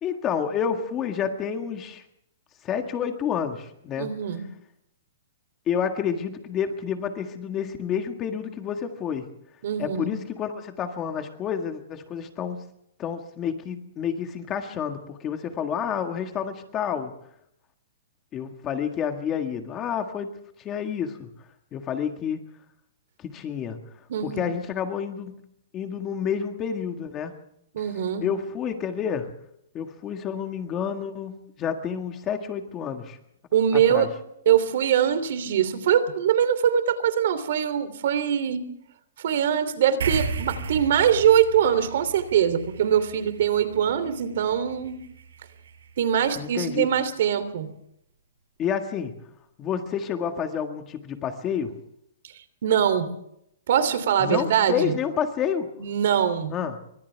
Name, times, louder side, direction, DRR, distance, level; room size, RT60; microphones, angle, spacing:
voice 1, 0.0-2.0 2.6-4.1 5.7-9.3 9.8-12.6 13.0-17.1 18.3-20.3 20.6-21.3 21.7-22.4 23.2-23.8 24.2-25.4 25.7-27.3 28.2-29.3 29.7-33.2 33.7-34.1 46.4-46.9 48.6-49.1 49.6-51.8 54.2-55.7 56.5-56.8, left 7 dB, 15° left, 6 dB, 1.7 m, -29 dB
voice 2, 4.0-4.4 9.6-10.1 24.1-24.5 27.7-28.2 33.5-34.1 34.4-38.6 39.2-45.0 46.0-47.7 52.6-53.1 53.7-54.9 55.8-56.5, right 9 dB, 55° right, 12 dB, 3.0 m, -22 dB
sound 1, 40.0-46.8, right 4 dB, 80° right, 5.3 m, -35 dB
30.0 x 25.0 x 3.5 m, 0.75 s
hypercardioid pair, 170°, 0 cm